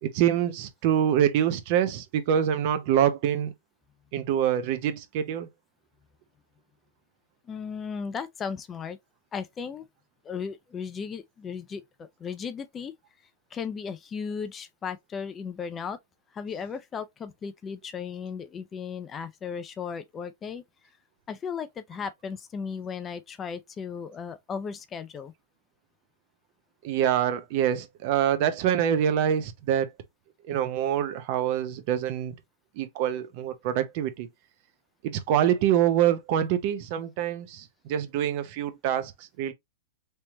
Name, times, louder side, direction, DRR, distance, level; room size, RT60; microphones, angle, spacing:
voice 1, 0.0-3.5 4.1-5.5 26.8-29.9 30.5-32.3 32.8-34.3 35.0-39.5, right 10 dB, 50° right, 0.7 m, -25 dB
voice 2, 7.4-9.0 9.3-9.9 10.2-12.9 13.5-16.0 16.3-20.6 21.3-25.3, left 6 dB, 20° left, 0.5 m, -36 dB
3.3 x 3.0 x 2.9 m
hypercardioid pair, 135°, 0 cm